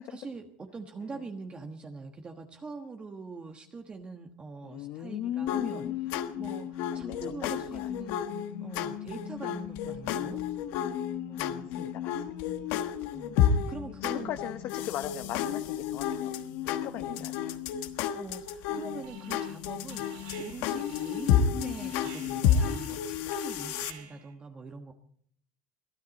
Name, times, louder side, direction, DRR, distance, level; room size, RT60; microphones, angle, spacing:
voice 1, 0.1-5.9 6.4-8.3 8.6-10.4 11.3-11.7 13.0-14.4 17.1-17.3 18.1-24.9, right 4 dB, 20° right, 4 dB, 1.3 m, -43 dB
voice 2, 4.6-6.0 6.9-7.9 11.8-12.2 14.0-16.3 16.6-17.5, left 11 dB, 55° left, 9 dB, 0.9 m, -38 dB
sound 1, 5.5-23.9, left 8 dB, 70° left, 1.3 m, -31 dB
Alarm, 19.0-19.6 19.9-24.3, right 7 dB, 85° right, 3.6 m, -50 dB
22.5 x 13.0 x 4.1 m, 0.62 s
supercardioid pair, 120°, 5 cm